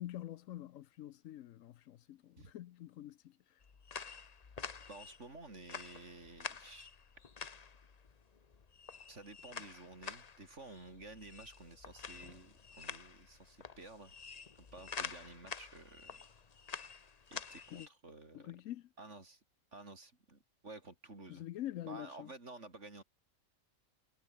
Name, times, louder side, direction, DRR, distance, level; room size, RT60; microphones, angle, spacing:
voice 1, 0.0-3.6 17.7-17.9 18.3-18.9 21.3-22.3, left 13 dB, 75° left, 1.0 m, -46 dB
sound 1, 3.6-17.9, left 5 dB, 35° left, 0.9 m, -48 dB
voice 2, 4.9-6.9 9.1-14.1 14.6-16.2 17.3-18.5 19.0-19.4 19.7-21.4 21.8-23.0, right 2 dB, 55° right, 4.3 m, -52 dB
omnidirectional pair, 1.5 m